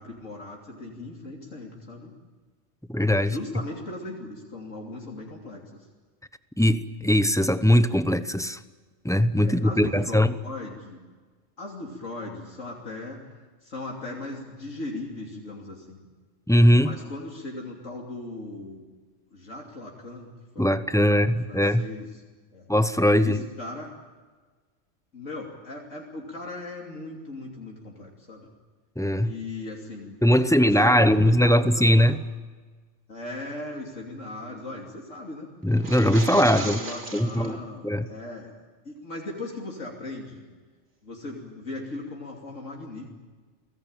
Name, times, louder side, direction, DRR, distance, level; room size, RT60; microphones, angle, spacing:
voice 1, 0.0-2.1 3.2-5.9 9.4-11.0 11.6-13.2 13.6-16.0 16.8-18.8 19.3-20.3 20.5-22.1 22.5-22.7 23.2-23.9 25.1-28.5 29.2-30.2 30.4-32.2 33.1-35.5 36.2-38.5 38.8-40.5 41.0-43.0, left 2 dB, 75° left, -1 dB, 3.4 m, -38 dB
voice 2, 2.9-3.4 6.6-8.6 9.0-10.3 16.5-16.9 20.6-21.8 22.7-23.4 29.0-29.3 30.2-32.2 35.6-36.8 37.1-38.1, equal, 5° left, 11 dB, 0.8 m, -20 dB
sound 1, 35.7-37.5, right 3 dB, 65° right, 3.0 m, -35 dB
30.0 x 19.5 x 9.0 m, 1.4 s
omnidirectional pair, 1.3 m